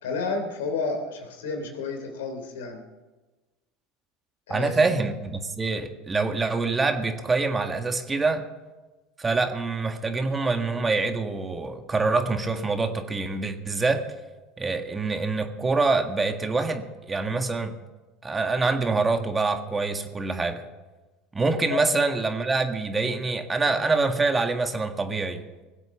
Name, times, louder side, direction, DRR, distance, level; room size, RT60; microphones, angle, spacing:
voice 1, 0.0-2.8 4.5-4.9 21.7-21.9, left 4 dB, 85° left, 4 dB, 3.2 m, -31 dB
voice 2, 4.5-8.5 9.2-14.1 14.6-17.8 18.2-20.6 21.3-25.4, right 3 dB, 20° right, 6 dB, 1.8 m, -25 dB
20.5 x 8.1 x 7.1 m, 1.2 s
hypercardioid pair, 85°, 0 cm